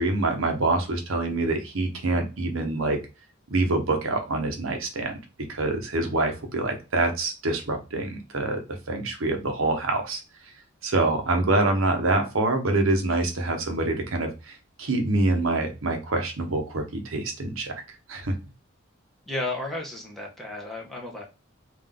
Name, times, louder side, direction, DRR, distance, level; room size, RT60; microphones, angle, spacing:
voice 1, 0.0-3.0 3.5-5.2 5.5-8.6 8.9-10.2 10.8-17.7 18.1-18.3, right 2 dB, 75° right, 4 dB, 0.9 m, -25 dB
voice 2, 19.3-21.3, left 2 dB, ahead, -2 dB, 1.0 m, -33 dB
3.6 x 2.6 x 3.6 m, 0.29 s
head